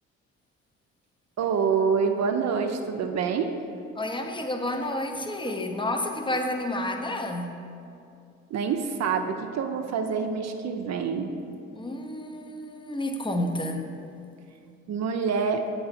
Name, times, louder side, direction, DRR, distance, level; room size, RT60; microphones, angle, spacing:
voice 1, 1.4-3.5 5.4-5.6 8.5-11.3 14.9-15.6, right 6 dB, 60° right, 5 dB, 0.6 m, -26 dB
voice 2, 4.0-7.6 11.7-13.9, left 1 dB, 15° left, 4 dB, 0.7 m, -30 dB
7.6 x 4.6 x 4.1 m, 2.5 s
supercardioid pair, 60°, 30 cm